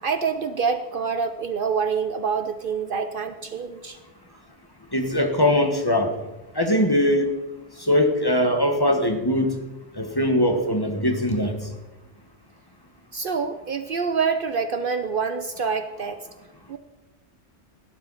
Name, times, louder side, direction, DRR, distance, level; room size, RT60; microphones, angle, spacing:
voice 1, 0.0-4.0 13.1-16.2 16.7-16.8, right 5 dB, 55° right, 10 dB, 0.8 m, -26 dB
voice 2, 4.9-6.1 6.5-7.2 7.8-9.5 9.9-11.5, left 1 dB, 20° left, 5 dB, 1.4 m, -21 dB
17.0 x 12.0 x 4.1 m, 1.0 s
omnidirectional pair, 1.1 m